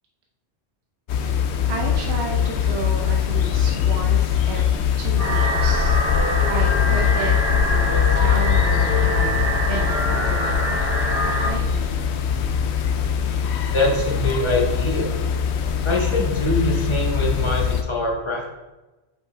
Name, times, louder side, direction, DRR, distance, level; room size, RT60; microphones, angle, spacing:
sound 1, 1.1-17.8, left 8 dB, 85° left, 0.9 m, -22 dB
voice 1, 1.7-5.9 6.5-9.3 9.7-10.8 11.2-12.0, right 4 dB, 75° right, 1 dB, 0.9 m, -32 dB
sound 2, 5.2-11.5, equal, 15° right, 1.6 m, -25 dB
voice 2, 13.7-15.1 15.8-18.5, left 1 dB, 30° left, -1 dB, 1.1 m, -23 dB
6.2 x 5.2 x 3.3 m, 1.1 s
omnidirectional pair, 1.1 m